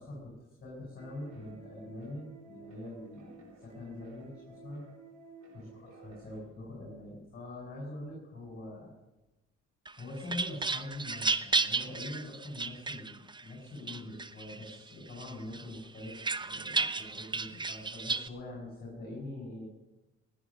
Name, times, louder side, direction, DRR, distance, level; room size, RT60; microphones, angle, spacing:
voice 1, 0.0-4.8 5.5-8.9 10.0-19.7, left 1 dB, 30° left, -4 dB, 7.1 m, -44 dB
sound 1, 1.0-6.4, right 4 dB, 75° right, 3.7 m, -54 dB
sound 2, 9.9-13.4 13.9-14.8 15.2-18.3, right 4 dB, 15° right, 0.6 m, -33 dB
18.0 x 10.5 x 6.4 m, 1.0 s
cardioid pair, 90°, 30 cm